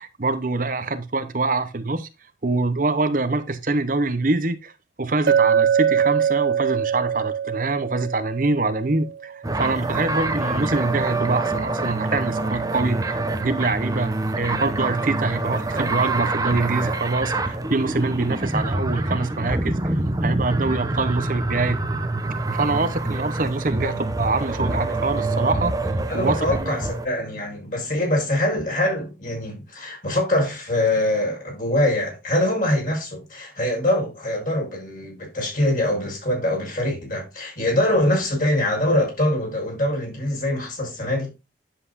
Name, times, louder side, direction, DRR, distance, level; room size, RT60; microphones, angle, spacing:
voice 1, 0.0-2.1 2.4-4.7 5.0-21.8 22.5-25.7 26.1-26.8, right 3 dB, 50° right, 0.9 m, -25 dB
Chink clink, 5.3-9.3, right 8 dB, 75° right, 0.6 m, -22 dB
sound 1, 9.4-27.1, right 2 dB, 20° right, 0.9 m, -26 dB
voice 2, 26.1-41.3, left 1 dB, 50° left, 6.0 m, -23 dB
10.0 x 7.8 x 2.6 m
head